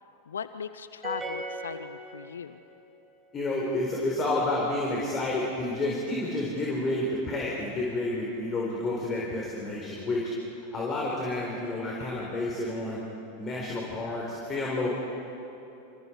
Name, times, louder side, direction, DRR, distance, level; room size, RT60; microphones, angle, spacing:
voice 1, 0.3-2.6, left 7 dB, 70° left, 12 dB, 0.6 m, -38 dB
sound 1, 1.0-2.7, right 2 dB, 10° right, 5.7 m, -37 dB
voice 2, 3.3-10.2 10.7-13.0 13.4-14.9, left 2 dB, 25° left, -3 dB, 4.6 m, -30 dB
28.5 x 27.5 x 4.9 m, 2.9 s
figure-of-eight pair, 90°, 0 cm